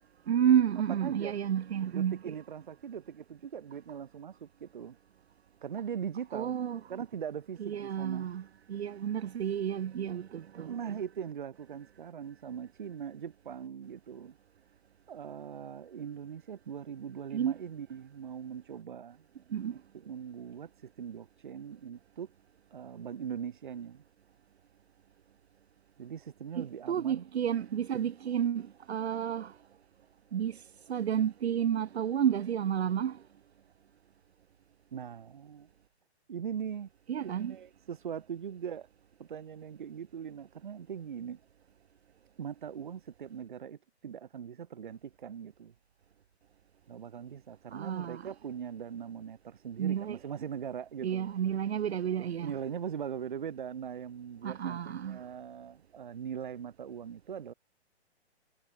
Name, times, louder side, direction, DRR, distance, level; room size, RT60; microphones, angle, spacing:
voice 1, 0.3-2.3 6.3-6.8 7.6-11.0 17.3-17.5 19.5-19.8 26.6-29.6 30.3-33.2 37.1-37.5 47.7-48.3 49.8-50.2 51.0-52.5 54.4-55.2, right 9 dB, 65° right, 0.7 m, -31 dB
voice 2, 0.9-1.4 1.9-5.0 5.6-6.5 6.9-8.3 10.7-14.4 15.1-19.2 19.6-22.3 22.7-24.0 26.0-27.2 28.0-28.2 34.9-35.7 36.3-36.9 37.2-38.9 39.2-41.4 42.4-45.7 46.9-51.3 52.4-57.5, right 8 dB, 45° right, 1.1 m, -41 dB
hypercardioid pair, 180°, 34 cm